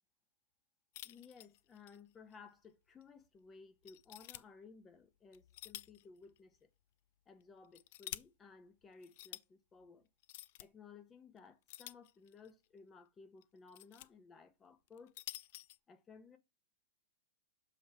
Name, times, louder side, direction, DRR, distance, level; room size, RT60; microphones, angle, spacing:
sound 1, 0.9-2.0 2.3-2.4 3.0-3.1 3.9-4.4 5.3-6.0 6.4-6.5 7.4-8.2 9.0-9.4 10.2-10.7 11.7-12.5 13.4-14.1 14.9-15.8, left 15 dB, 55° left, 0.5 m, -49 dB
voice 1, 1.0-6.7 7.3-10.1 10.6-15.1 15.9-16.4, left 5 dB, 20° left, 1.2 m, -58 dB
7.2 x 3.5 x 4.4 m
hypercardioid pair, 125°, 0 cm